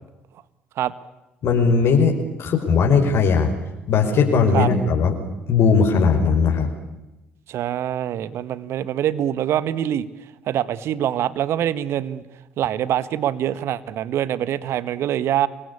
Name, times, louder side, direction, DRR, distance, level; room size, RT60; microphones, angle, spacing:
voice 1, 1.4-3.5 3.9-5.1 5.5-6.7, left 5 dB, 55° left, 2 dB, 5.3 m, -18 dB
voice 2, 7.5-10.0 10.5-12.2 12.6-15.5, right 11 dB, 55° right, 16 dB, 1.6 m, -24 dB
28.5 x 23.5 x 8.5 m, 0.98 s
figure-of-eight pair, 50°, 5 cm